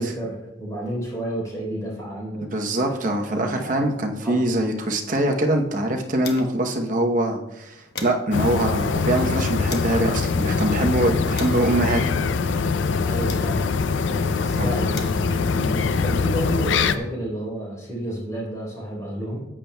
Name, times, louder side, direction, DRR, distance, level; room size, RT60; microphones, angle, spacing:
voice 1, 0.0-3.8 4.2-4.6 13.0-13.7 14.3-19.5, right 1 dB, 20° left, -4 dB, 3.7 m, -31 dB
voice 2, 2.5-12.1 14.1-14.2 14.6-14.7, right 1 dB, 45° right, 3 dB, 0.9 m, -23 dB
sound 1, 4.9-6.8 7.1-7.2 7.5-10.0 10.7-13.9 14.6-16.8, left 4 dB, 60° left, 1.0 m, -42 dB
sound 2, 8.3-17.0, left 4 dB, 90° left, 0.5 m, -23 dB
13.5 x 8.7 x 2.2 m, 0.94 s
head